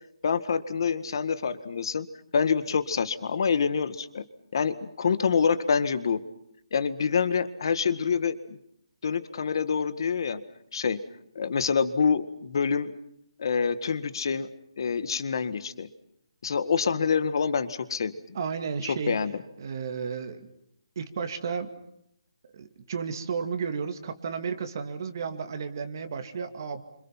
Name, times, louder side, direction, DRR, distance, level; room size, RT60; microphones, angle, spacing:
voice 1, 0.2-2.1 2.3-4.2 4.5-6.2 6.7-8.6 9.0-10.4 10.7-11.0 11.4-12.9 13.4-14.5 14.8-15.9 16.4-18.2 19.1-19.3, left 6 dB, 45° left, 12 dB, 1.8 m, -26 dB
voice 2, 18.3-19.2 19.6-20.5 21.0-21.7 22.5-26.8, right 6 dB, 35° right, 7 dB, 2.3 m, -33 dB
29.5 x 26.5 x 5.9 m, 0.73 s
hypercardioid pair, 175°, 3 cm